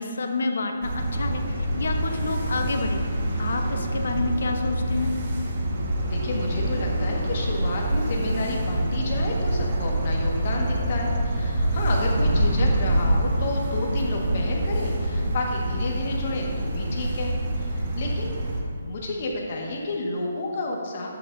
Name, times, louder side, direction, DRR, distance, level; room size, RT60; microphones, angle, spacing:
voice 1, 0.0-3.0 3.4-5.1, left 3 dB, 70° left, 5 dB, 0.9 m, -29 dB
sound 1, 0.8-18.6, right 1 dB, 45° right, 1.4 m, -26 dB
voice 2, 6.1-18.5 18.8-21.1, left 2 dB, 45° left, -1 dB, 1.5 m, -31 dB
10.5 x 8.4 x 2.6 m, 2.1 s
hypercardioid pair, 165°, 0 cm